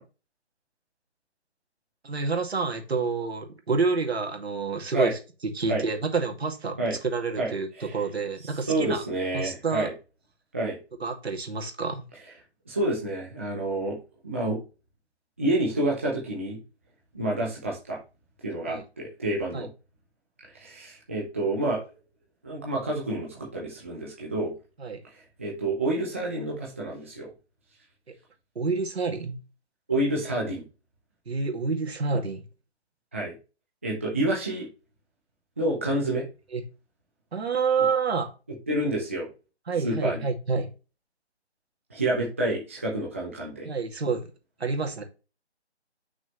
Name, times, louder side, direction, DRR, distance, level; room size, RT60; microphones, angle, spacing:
voice 1, 2.0-5.2 5.5-7.7 7.9-9.0 9.3-9.9 11.0-12.1 18.7-18.8 19.5-19.7 24.8-25.0 28.1-28.2 28.6-29.4 31.3-32.4 36.0-36.2 36.5-36.6 37.3-38.3 39.7-40.7 43.6-44.2 44.6-45.0, right 4 dB, 65° right, 2.3 m, -28 dB
voice 2, 8.7-9.9 10.5-10.8 12.7-14.0 14.2-14.6 15.4-16.6 17.1-18.0 18.4-19.7 20.5-21.8 22.4-24.5 25.4-27.3 29.9-30.6 33.1-33.3 33.8-34.7 35.6-36.2 38.7-39.3 39.8-40.2 41.9-43.7, right 1 dB, 10° right, 0.7 m, -28 dB
6.4 x 6.1 x 3.1 m
hypercardioid pair, 170°, 34 cm